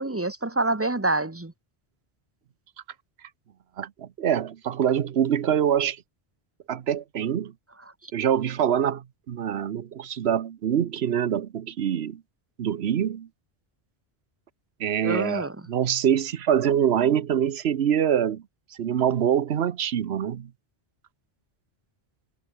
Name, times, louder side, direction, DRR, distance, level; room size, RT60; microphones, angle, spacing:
voice 1, 0.0-1.5 8.0-8.1 15.0-15.6, right 2 dB, 15° right, 1.2 m, -26 dB
voice 2, 3.8-6.0 6.7-7.5 8.1-12.2 12.6-13.3 14.8-18.4 18.8-20.5, right 9 dB, 85° right, 1.1 m, -25 dB
omnidirectional pair, 1.0 m